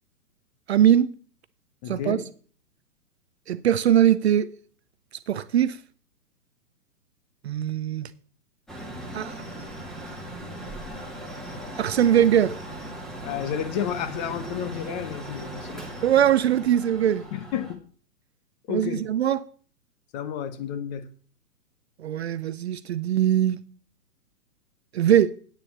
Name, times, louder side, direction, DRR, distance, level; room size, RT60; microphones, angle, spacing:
voice 1, 0.7-1.1 1.9-2.2 3.5-4.5 5.3-5.8 7.4-8.1 9.1-9.3 11.8-12.6 16.0-17.2 18.7-19.4 22.0-23.6 24.9-25.3, right 10 dB, 45° right, 0.5 m, -21 dB
voice 2, 1.8-2.2 10.7-10.8 13.2-15.8 17.3-17.8 18.7-19.0 20.1-21.1 25.1-25.2, left 9 dB, 25° left, 0.8 m, -31 dB
Mechanical fan, 8.7-17.8, right 1 dB, ahead, 1.7 m, -38 dB
9.2 x 6.8 x 7.0 m
hypercardioid pair, 130°, 48 cm